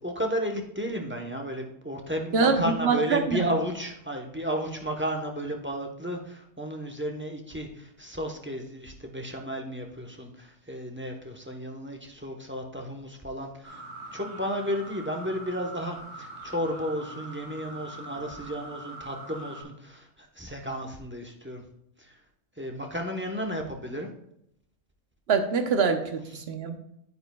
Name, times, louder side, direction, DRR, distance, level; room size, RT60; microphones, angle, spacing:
voice 1, 0.0-13.8 14.1-21.6 22.0-22.2 22.6-24.1, equal, 10° right, 2 dB, 0.9 m, -33 dB
voice 2, 2.8-3.5 25.3-26.8, right 5 dB, 60° right, 6 dB, 1.1 m, -24 dB
sound 1, 13.6-19.6, right 2 dB, 85° right, 3.1 m, -43 dB
9.6 x 9.1 x 2.3 m, 0.75 s
omnidirectional pair, 1.3 m